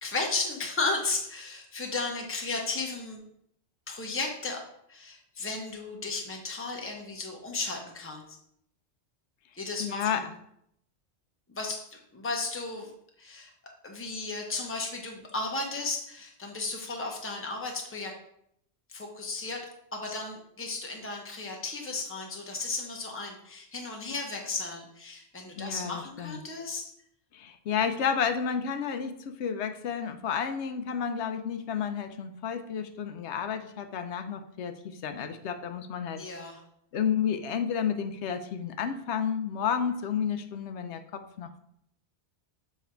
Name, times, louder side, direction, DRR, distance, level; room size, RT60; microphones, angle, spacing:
voice 1, 0.0-3.2 3.9-4.6 4.9-8.2 9.6-10.2 11.5-12.9 13.2-13.5 13.8-18.1 18.9-26.8 36.1-36.6, left 3 dB, 15° left, 1 dB, 0.8 m, -34 dB
voice 2, 9.8-10.3 25.6-26.4 27.3-36.2 36.9-41.6, left 7 dB, 80° left, 8 dB, 0.9 m, -31 dB
7.2 x 3.3 x 4.4 m, 0.72 s
omnidirectional pair, 1.2 m